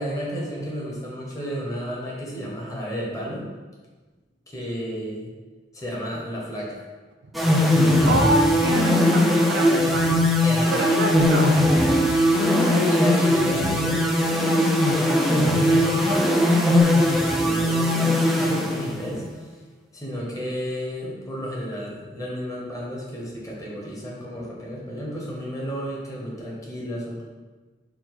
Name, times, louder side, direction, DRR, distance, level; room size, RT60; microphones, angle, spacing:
voice 1, 0.0-3.5 4.5-5.3 5.7-6.8 7.4-8.3 8.6-8.7 10.4-11.0 12.7-19.2 19.9-27.2, equal, 20° left, -4 dB, 0.9 m, -31 dB
sound 1, 7.4-19.2, left 1 dB, ahead, 0.3 m, -20 dB
voice 2, 8.1-10.2 10.7-11.5, right 1 dB, 70° right, 3 dB, 0.5 m, -26 dB
4.6 x 2.1 x 4.1 m, 1.3 s
head